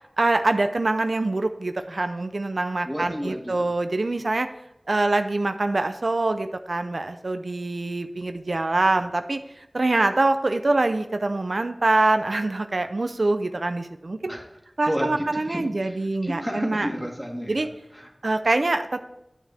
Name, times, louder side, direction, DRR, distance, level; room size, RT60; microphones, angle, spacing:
voice 1, 0.2-4.5 4.9-9.4 9.7-14.3 14.8-16.9 17.5-17.7 18.2-19.0, right 2 dB, 85° right, 8 dB, 0.5 m, -24 dB
voice 2, 2.9-3.7 14.3-14.4 14.8-18.1, equal, ahead, 0 dB, 2.0 m, -32 dB
9.6 x 9.1 x 3.4 m, 0.85 s
wide cardioid pair, 50°, 0 cm